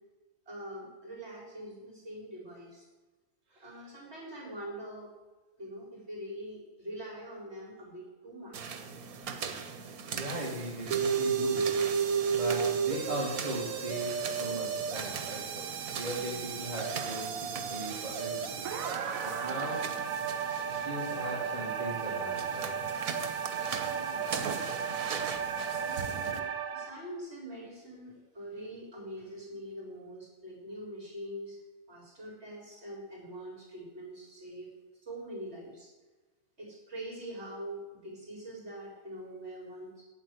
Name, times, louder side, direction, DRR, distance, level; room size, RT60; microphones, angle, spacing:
voice 1, 0.5-2.9 3.6-5.1 5.6-8.9 11.8-12.0 16.1-16.4 19.5-19.8 23.9-24.3 25.8-31.6 31.9-34.7 35.0-35.9 36.6-40.0, right 1 dB, 45° right, -3 dB, 4.6 m, -44 dB
sound 1, 8.5-26.4, right 6 dB, 90° right, 1.4 m, -41 dB
voice 2, 10.1-18.7 19.2-19.9 20.6-22.8, right 1 dB, 30° right, -4 dB, 2.0 m, -39 dB
sound 2, 10.9-26.9, right 6 dB, 70° right, 1.3 m, -33 dB
8.9 x 8.4 x 8.2 m, 1.2 s
omnidirectional pair, 1.5 m